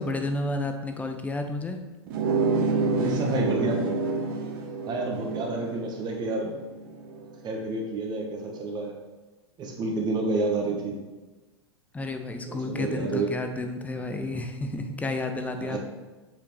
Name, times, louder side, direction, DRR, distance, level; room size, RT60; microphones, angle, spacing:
voice 1, 0.0-1.8 11.9-15.8, left 2 dB, 10° left, 5 dB, 0.7 m, -31 dB
sound 1, 2.1-7.4, right 4 dB, 50° right, 1.1 m, -28 dB
voice 2, 2.9-3.9 4.9-6.5 7.4-8.9 9.6-11.0 12.5-13.3 15.6-15.8, right 2 dB, 30° right, 1 dB, 1.2 m, -29 dB
7.3 x 5.1 x 3.2 m, 1.2 s
figure-of-eight pair, 95°, 15 cm